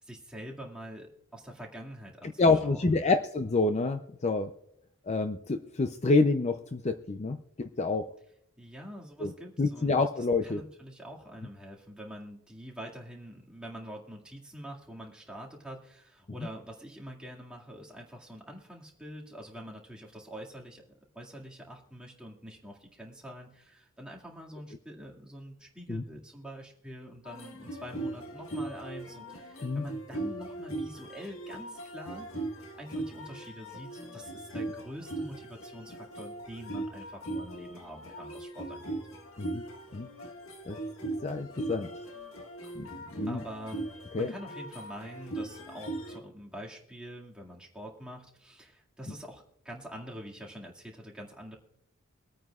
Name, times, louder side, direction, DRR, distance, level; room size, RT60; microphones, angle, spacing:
voice 1, 0.0-3.1 8.6-32.3 32.7-39.0 43.3-43.8 44.1-51.6, equal, 5° right, -3 dB, 2.1 m, -45 dB
voice 2, 2.4-4.5 5.1-8.1 9.2-9.3 9.6-10.6 25.9-26.0 29.6-29.8 39.4-39.6 39.9-40.1 40.7-40.8 41.2-41.9 42.8-42.9 43.2-43.4 44.1-44.3, left 3 dB, 35° left, 8 dB, 0.5 m, -27 dB
sound 1, 27.2-46.2, right 2 dB, 85° left, 1.7 m, -39 dB
24.5 x 9.1 x 2.4 m, 0.78 s
head